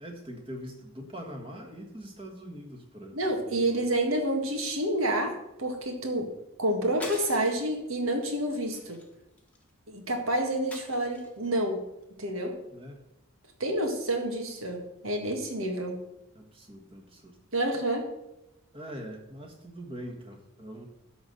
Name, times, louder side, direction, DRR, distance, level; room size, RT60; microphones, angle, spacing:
voice 1, 0.0-3.8 12.7-13.0 16.3-17.4 18.7-20.8, equal, 25° right, 2 dB, 1.6 m, -43 dB
voice 2, 3.1-6.3 6.6-9.0 9.9-11.9 12.2-12.6 13.6-16.0 17.5-18.1, right 1 dB, 75° right, 4 dB, 1.9 m, -29 dB
sound 1, 7.0-7.7 8.2-8.4 8.7-9.7 10.7-11.5, left 1 dB, 5° left, 1.3 m, -44 dB
12.0 x 4.1 x 7.7 m, 0.90 s
head